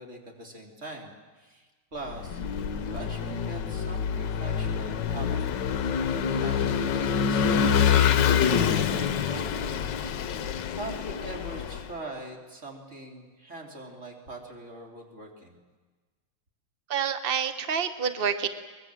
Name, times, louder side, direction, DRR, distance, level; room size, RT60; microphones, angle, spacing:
voice 1, 0.0-2.4 2.8-5.7 6.3-9.7 10.7-15.6, right 2 dB, 30° right, 1 dB, 3.6 m, -42 dB
Vehicle / Engine, 2.1-11.9, left 7 dB, 60° left, 1.4 m, -26 dB
voice 2, 16.9-18.5, right 7 dB, 60° right, 10 dB, 0.6 m, -28 dB
23.5 x 21.0 x 7.6 m, 1.3 s
omnidirectional pair, 2.4 m